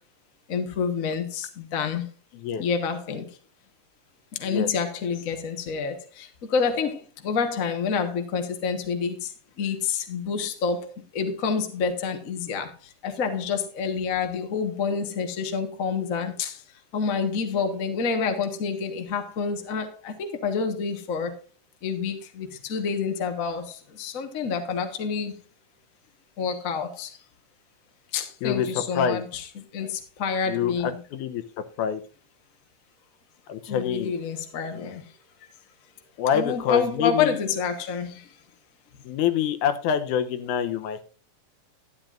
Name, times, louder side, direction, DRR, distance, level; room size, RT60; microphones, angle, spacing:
voice 1, 0.5-2.0 2.6-3.3 4.4-9.3 9.6-10.9 11.1-12.7 13.0-16.6 16.9-21.3 21.8-25.4 26.4-27.2 28.1-31.0 33.7-35.0 36.3-38.3, left 5 dB, 50° left, 1.0 m, -28 dB
voice 2, 28.4-29.2 30.5-30.7 31.1-31.4 31.8-32.0 33.5-34.1 36.2-37.4 39.0-41.0, left 8 dB, 80° left, 2.2 m, -26 dB
12.0 x 10.5 x 2.5 m
omnidirectional pair, 3.6 m